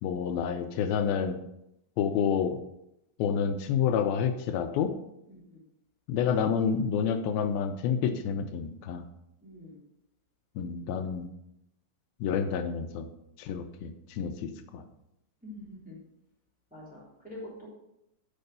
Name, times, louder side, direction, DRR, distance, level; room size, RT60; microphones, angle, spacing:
voice 1, 0.0-1.4 2.0-2.6 3.2-4.9 6.1-9.0 10.6-11.3 12.2-13.1 13.4-14.8, left 7 dB, 90° left, 8 dB, 2.5 m, -29 dB
voice 2, 5.3-5.6 9.4-9.8 15.4-16.0 16.7-17.0 17.2-17.7, left 1 dB, ahead, -8 dB, 3.0 m, -45 dB
6.9 x 5.4 x 6.7 m, 0.83 s
omnidirectional pair, 4.1 m